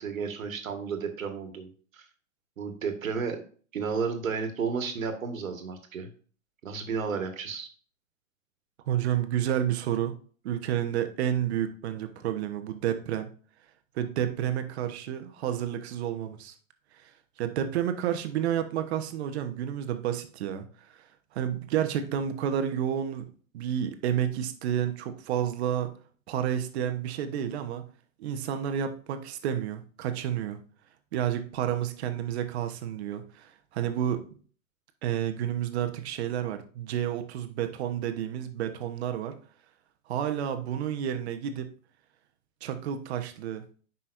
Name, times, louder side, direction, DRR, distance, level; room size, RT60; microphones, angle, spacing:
voice 1, 0.0-1.7 1.9-2.0 2.6-3.4 3.7-6.1 6.6-7.7, right 5 dB, 75° right, 6 dB, 1.8 m, -32 dB
voice 2, 8.9-10.2 10.4-13.3 13.9-16.5 17.0-17.1 17.4-21.0 21.3-23.3 23.5-25.9 26.3-27.8 28.2-30.6 31.1-34.3 35.0-39.4 40.1-41.7 42.6-43.6, right 10 dB, 50° right, 8 dB, 1.2 m, -30 dB
9.6 x 5.6 x 2.6 m, 0.43 s
hypercardioid pair, 125°, 40 cm